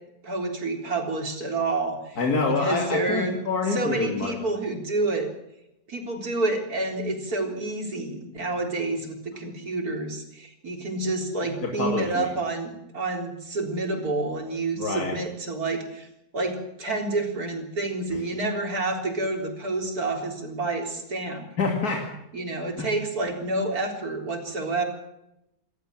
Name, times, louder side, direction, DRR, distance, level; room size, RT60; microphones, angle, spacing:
voice 1, 0.2-2.2 2.5-3.4 3.7-5.3 5.9-16.1 16.3-21.5 22.3-24.8, right 2 dB, 75° right, 2 dB, 4.3 m, -29 dB
voice 2, 2.2-4.3 11.6-12.3 14.8-15.1 21.6-22.0 22.8-22.9, left 3 dB, 85° left, 1 dB, 3.1 m, -26 dB
27.5 x 13.5 x 7.6 m, 0.85 s
omnidirectional pair, 1.6 m